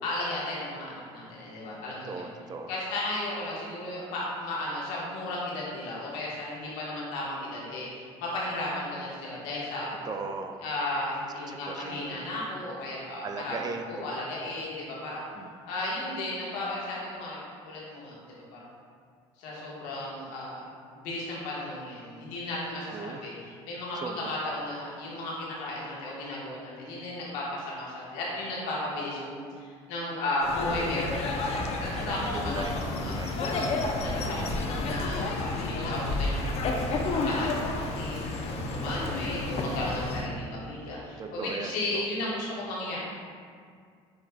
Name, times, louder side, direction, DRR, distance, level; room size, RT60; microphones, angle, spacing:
voice 1, 0.0-2.2 2.7-10.0 10.6-15.3 15.7-18.7 19.4-20.6 20.9-23.3 23.6-33.4 34.0-43.0, left 1 dB, 80° left, -5 dB, 1.2 m, -35 dB
voice 2, 2.1-2.7 10.1-10.6 11.5-12.2 13.2-14.2 15.4-15.5 22.9-23.2 24.0-24.3 32.1-33.8 34.2-34.6 38.6-39.2 41.2-42.1, right 4 dB, 30° right, 5 dB, 0.4 m, -38 dB
sound 1, 30.4-40.3, left 2 dB, 50° left, 0.5 m, -31 dB
6.0 x 3.2 x 2.2 m, 2.1 s
supercardioid pair, 80°, 13 cm